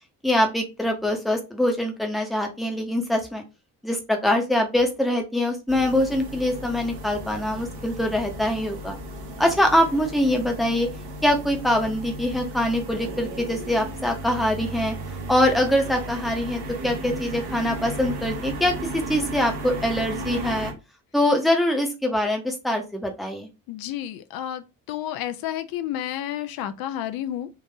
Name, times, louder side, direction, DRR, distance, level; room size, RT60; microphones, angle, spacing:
voice 1, 0.2-3.4 3.8-9.0 9.4-10.9 11.2-14.9 15.3-20.7 21.1-23.5, left 1 dB, ahead, 0.8 m, -23 dB
sound 1, 5.7-20.7, right 1 dB, 55° right, 1.0 m, -35 dB
voice 2, 23.7-27.5, left 11 dB, 50° left, 0.5 m, -31 dB
3.9 x 2.5 x 2.7 m
figure-of-eight pair, 40°, 48 cm